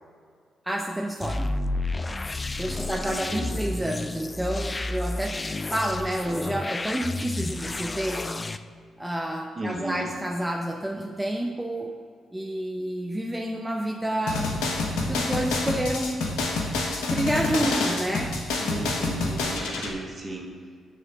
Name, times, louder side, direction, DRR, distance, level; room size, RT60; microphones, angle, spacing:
voice 1, 0.7-1.5 2.6-5.4 5.6-8.2 9.0-11.9 12.3-14.5 15.1-16.2 17.1-18.3, right 1 dB, 10° right, 1 dB, 0.7 m, -29 dB
sound 1, 1.2-8.6, left 2 dB, 30° left, 0.4 m, -31 dB
voice 2, 2.6-3.6 9.6-10.1 18.6-20.5, right 2 dB, 40° right, 0 dB, 1.5 m, -36 dB
sound 2, 14.3-19.9, left 2 dB, 80° left, 0.8 m, -27 dB
7.6 x 3.2 x 5.9 m, 2.1 s
hypercardioid pair, 45°, 0 cm